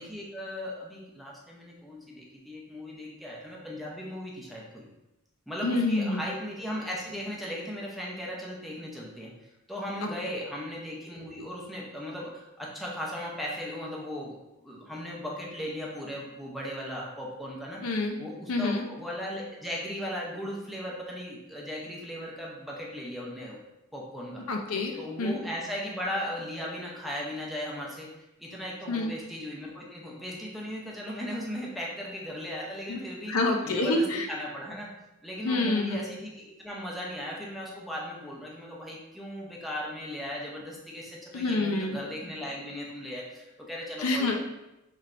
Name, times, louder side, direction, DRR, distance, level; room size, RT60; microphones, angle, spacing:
voice 1, 0.0-4.9 5.5-9.3 9.7-14.3 14.6-17.8 18.2-23.6 23.9-24.4 25.0-28.1 28.4-33.3 33.6-34.9 35.2-44.4, equal, ahead, -4 dB, 0.7 m, -37 dB
voice 2, 5.6-6.2 10.0-10.1 17.8-18.2 18.5-18.8 24.5-25.4 28.9-29.1 32.9-33.0 33.3-34.3 35.4-36.0 41.3-42.0 44.0-44.4, left 2 dB, 75° left, 3 dB, 0.5 m, -27 dB
4.3 x 3.2 x 2.5 m, 0.94 s
head